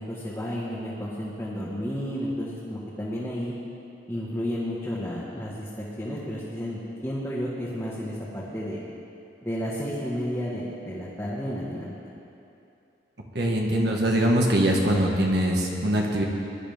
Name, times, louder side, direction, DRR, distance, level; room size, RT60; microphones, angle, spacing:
voice 1, 0.0-3.5 4.1-8.8 9.4-11.9, equal, 15° left, -9 dB, 1.7 m, -32 dB
voice 2, 13.3-16.3, right 1 dB, 60° right, -1 dB, 1.6 m, -22 dB
21.5 x 11.5 x 3.6 m, 2.7 s
head